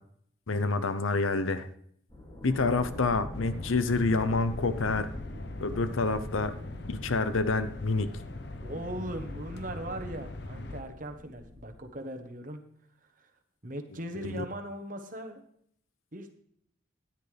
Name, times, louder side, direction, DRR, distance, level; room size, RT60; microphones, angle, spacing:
voice 1, 0.5-1.7 2.4-5.1 5.6-6.5 6.9-8.1 14.3-14.4, left 3 dB, 80° left, 12 dB, 0.8 m, -27 dB
sound 1, 2.1-11.9, left 1 dB, 20° left, 2.4 m, -45 dB
sound 2, 3.3-10.8, left 2 dB, 55° left, 0.9 m, -41 dB
voice 2, 8.6-12.6 13.0-13.3 13.6-15.4 16.1-16.4, right 1 dB, 40° right, 5 dB, 1.2 m, -39 dB
13.0 x 10.0 x 3.4 m, 0.66 s
head